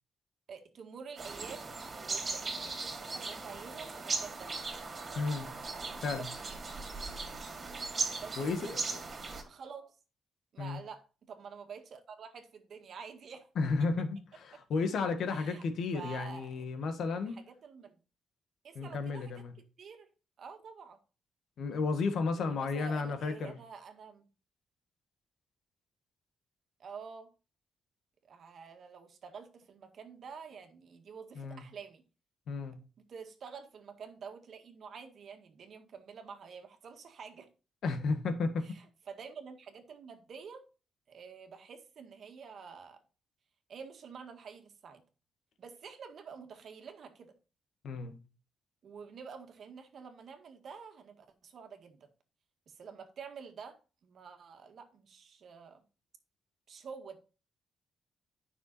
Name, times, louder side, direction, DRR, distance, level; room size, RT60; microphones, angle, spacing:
voice 1, 0.5-1.7 2.0-4.5 6.0-6.3 8.2-8.7 9.5-9.9 10.5-13.7 15.3-15.6 15.9-16.7 17.2-18.0 18.6-19.4 19.8-20.1 20.4-21.0 22.3-24.3 26.8-27.3 28.3-32.0 33.1-37.5 38.6-40.7 41.1-43.0 43.7-45.0 45.6-47.3 48.8-52.1 52.7-53.8 54.0-55.8 56.7-57.2, right 6 dB, 65° right, 1.8 m, -48 dB
sound 1, 1.2-9.4, right 4 dB, 45° right, 2.6 m, -38 dB
voice 2, 5.2-5.5 6.0-6.3 8.4-8.8 10.6-10.8 13.6-17.4 18.8-19.5 21.6-23.6 31.4-31.6 32.5-32.8 37.8-38.8 47.8-48.2, left 4 dB, 75° left, 1.6 m, -33 dB
9.7 x 6.1 x 4.1 m
cardioid pair, 80°, 0 cm